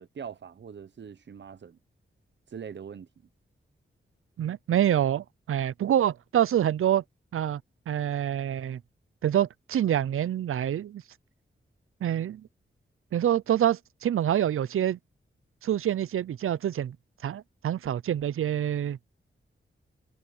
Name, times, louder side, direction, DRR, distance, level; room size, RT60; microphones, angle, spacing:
voice 1, 0.0-1.8 2.5-3.1, right 7 dB, 60° right, 0.9 m, -42 dB
voice 2, 4.4-7.0 7.3-7.6 7.9-8.8 9.2-11.0 12.0-12.5 13.1-15.0 15.6-17.0 17.2-19.0, right 10 dB, 85° right, 0.5 m, -26 dB
wide cardioid pair, 155°, 21 cm